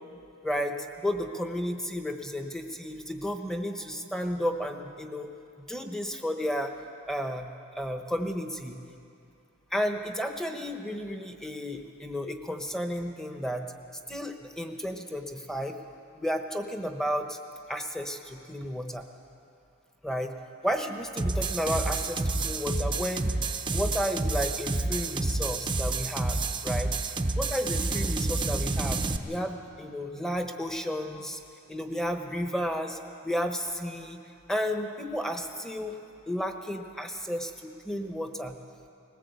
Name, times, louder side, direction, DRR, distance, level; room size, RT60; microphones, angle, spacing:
voice 1, 0.4-5.3 5.7-6.7 7.1-7.5 7.7-8.8 9.7-13.7 14.1-15.8 16.2-17.4 17.7-19.0 20.0-20.3 20.6-23.4 23.7-26.4 26.6-26.9 27.4-31.4 31.7-33.0 33.2-34.2 34.5-35.9 36.3-38.6, equal, ahead, 5 dB, 1.1 m, -32 dB
sound 1, 21.2-29.2, right 3 dB, 20° right, 0.8 m, -29 dB
20.0 x 17.5 x 8.2 m, 2.6 s
head